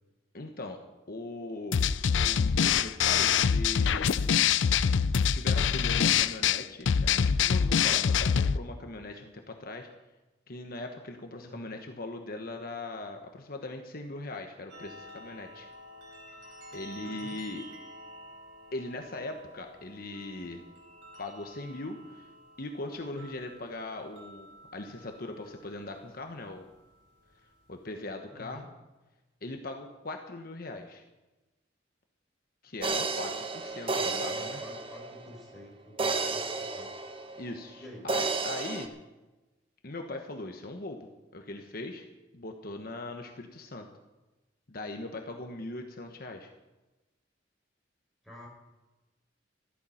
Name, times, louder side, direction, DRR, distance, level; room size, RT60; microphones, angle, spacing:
voice 1, 0.3-0.8 1.1-1.8 2.2-4.3 5.3-9.9 10.5-15.7 16.7-17.6 18.7-20.6 21.2-22.3 22.6-24.5 24.7-26.7 27.7-28.7 29.4-31.0 32.6-34.6 37.4-39.0 39.8-42.1 42.3-43.9 44.7-46.5, left 2 dB, 50° left, 4 dB, 1.1 m, -40 dB
sound 1, 1.7-8.6, left 7 dB, 80° left, 0.5 m, -24 dB
sound 2, 14.7-28.0, equal, 85° right, 4.7 m, -51 dB
voice 2, 17.0-17.3 28.3-28.7 34.0-36.9 37.8-38.1 48.2-48.5, equal, ahead, -3 dB, 4.8 m, -48 dB
sound 3, 32.8-35.4 36.0-37.7 38.1-38.9, right 3 dB, 30° right, 1.0 m, -32 dB
14.0 x 13.0 x 5.8 m, 1.1 s
head